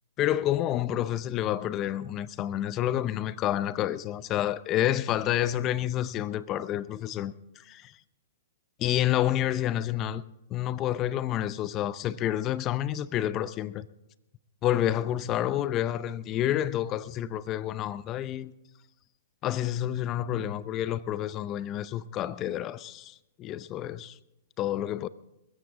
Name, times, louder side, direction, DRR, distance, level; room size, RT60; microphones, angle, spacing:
voice 1, 0.2-7.9 8.8-10.2 10.5-13.9 14.6-18.5 19.4-24.2 24.6-25.1, left 12 dB, 30° left, 0.6 m, -29 dB
22.5 x 14.5 x 3.6 m
hypercardioid pair, 130°, 0 cm